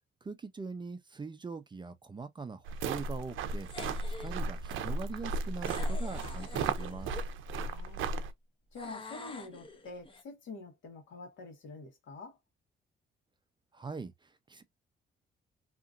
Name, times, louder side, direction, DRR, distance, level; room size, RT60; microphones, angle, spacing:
voice 1, 0.2-3.7 4.1-7.2 13.7-14.6, right 4 dB, 25° right, 0.5 m, -42 dB
sound 1, 2.7-8.3, right 3 dB, 80° right, 0.5 m, -35 dB
sound 2, 3.7-4.4 5.6-7.3 8.7-10.2, left 2 dB, 25° left, 0.7 m, -47 dB
voice 2, 7.5-8.1 8.7-12.4, left 3 dB, 75° left, 1.5 m, -47 dB
2.9 x 2.5 x 2.5 m
cardioid pair, 90°, 20 cm